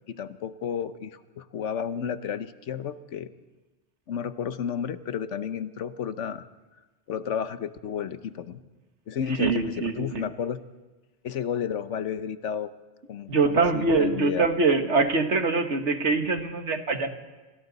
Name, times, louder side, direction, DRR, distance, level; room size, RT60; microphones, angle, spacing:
voice 1, 0.1-3.3 4.1-6.5 7.1-8.6 9.1-10.6 11.2-12.7 13.1-14.5, left 8 dB, 85° left, 12 dB, 1.2 m, -32 dB
voice 2, 9.4-10.2 13.3-17.1, right 4 dB, 75° right, 6 dB, 1.8 m, -24 dB
27.5 x 25.5 x 4.1 m, 1.2 s
omnidirectional pair, 1.2 m